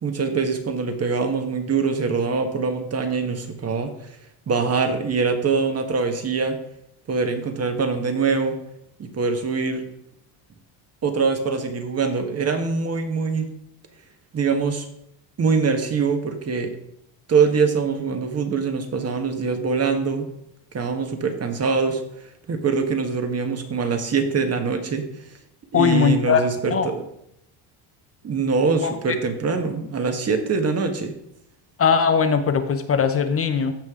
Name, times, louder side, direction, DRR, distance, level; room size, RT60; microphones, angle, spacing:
voice 1, 0.0-4.1 4.5-6.6 7.1-8.6 9.0-9.8 11.0-13.5 14.3-14.9 15.4-16.7 17.3-20.3 20.7-22.0 22.5-25.1 25.7-27.0 28.2-31.1, right 5 dB, 30° right, 6 dB, 1.4 m, -23 dB
voice 2, 25.7-26.9 28.8-29.2 31.8-33.7, left 6 dB, 30° left, 9 dB, 0.6 m, -20 dB
15.0 x 5.4 x 3.7 m, 0.78 s
cardioid pair, 120°, 48 cm